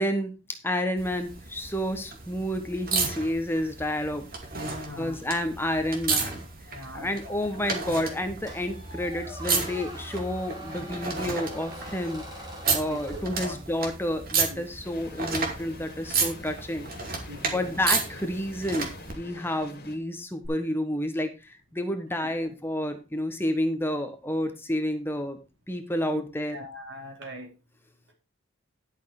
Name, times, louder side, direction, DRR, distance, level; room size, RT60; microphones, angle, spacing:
voice 1, 0.0-4.3 5.0-6.5 6.9-17.3 17.5-25.4 25.7-26.6, left 1 dB, 10° left, 7 dB, 1.1 m, -30 dB
sound 1, 1.0-19.1 20.4-20.5, right 4 dB, 45° right, 2.5 m, -33 dB
voice 2, 4.5-5.2 6.6-7.4 12.7-13.9 14.5-14.7 17.3-17.8 22.3-22.5 26.1-26.2 26.5-27.5 28.1-28.2, equal, 70° right, 1 dB, 4.1 m, -41 dB
Squeak, 8.5-14.0, equal, 20° right, 3.1 m, -43 dB
sound 2, 14.8-20.0, left 2 dB, 50° left, 2.2 m, -46 dB
11.0 x 6.5 x 4.8 m, 0.29 s
head